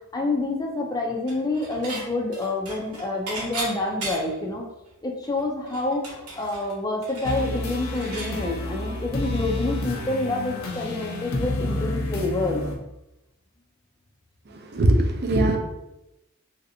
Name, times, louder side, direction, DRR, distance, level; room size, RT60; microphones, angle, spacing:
voice 1, 0.1-4.6 5.0-12.6, left 2 dB, 15° left, 1 dB, 0.4 m, -28 dB
Dishes pots and pans / Chink clink, 1.3-2.0 2.3-4.4 4.9-5.0 5.2-8.3, right 2 dB, 90° right, 1.1 m, -36 dB
sound 1, 7.2-12.8, left 2 dB, 70° left, 0.5 m, -29 dB
voice 2, 14.5-15.6, right 1 dB, 45° right, 3 dB, 0.4 m, -21 dB
3.2 x 2.7 x 2.6 m, 0.91 s
head